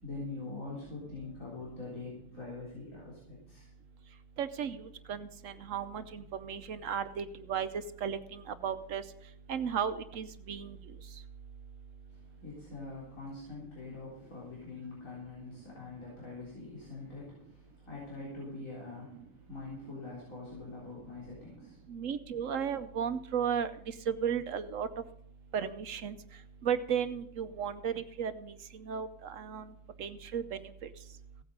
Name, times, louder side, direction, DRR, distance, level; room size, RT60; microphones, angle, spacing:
voice 1, 0.0-3.7 12.1-21.9, left 3 dB, 85° left, -6 dB, 4.2 m, -44 dB
voice 2, 4.4-4.8 5.1-9.0 9.5-10.8 21.9-23.7 24.1-24.9 25.5-26.2 26.6-28.5 28.9-29.7 30.0-30.6, right 7 dB, 75° right, 11 dB, 1.1 m, -34 dB
16.0 x 8.7 x 5.5 m, 0.74 s
omnidirectional pair, 1.4 m